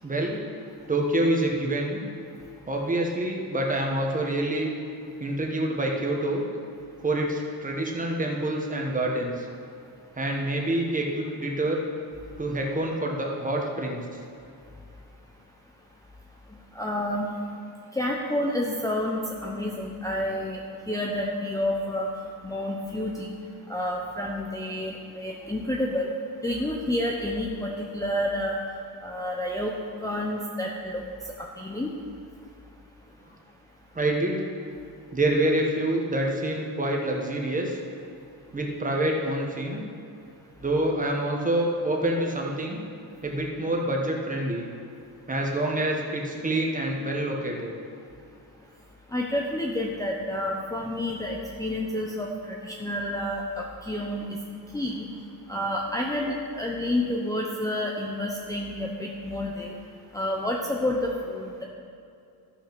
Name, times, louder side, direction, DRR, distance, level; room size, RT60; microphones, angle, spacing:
voice 1, 0.0-0.4 0.9-2.0 2.7-4.7 5.2-6.4 7.0-9.5 10.2-11.8 12.4-14.0 33.9-34.4 35.1-37.8 38.5-39.9 40.6-42.8 43.2-44.7 45.3-47.7, right 1 dB, 20° right, 0 dB, 1.4 m, -27 dB
voice 2, 16.8-17.3 17.9-20.6 20.9-22.1 22.4-23.3 23.7-26.1 26.4-28.6 29.0-29.7 30.0-31.0 31.6-31.9 49.1-54.3 54.7-55.0 55.5-59.7 60.1-61.6, left 1 dB, 10° left, -2 dB, 0.7 m, -29 dB
13.0 x 5.9 x 6.1 m, 2.5 s
wide cardioid pair, 140°, 38 cm